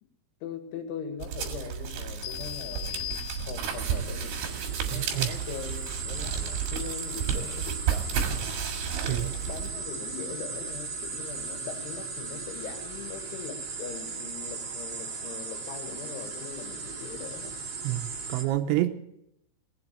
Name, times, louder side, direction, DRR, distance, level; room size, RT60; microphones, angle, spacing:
voice 1, 0.4-4.5 4.8-8.3 9.0-17.5, left 8 dB, 75° left, 5 dB, 4.2 m, -41 dB
sound 1, 1.2-9.7, right 8 dB, 60° right, 3.2 m, -32 dB
sound 2, 2.2-4.0, left 16 dB, 90° left, 3.8 m, -38 dB
sound 3, 3.6-18.4, right 4 dB, 40° right, 2.5 m, -37 dB
voice 2, 4.9-5.4 9.1-9.3 17.8-19.0, right 14 dB, 80° right, 7 dB, 2.8 m, -28 dB
19.0 x 7.7 x 8.3 m, 0.78 s
omnidirectional pair, 5.8 m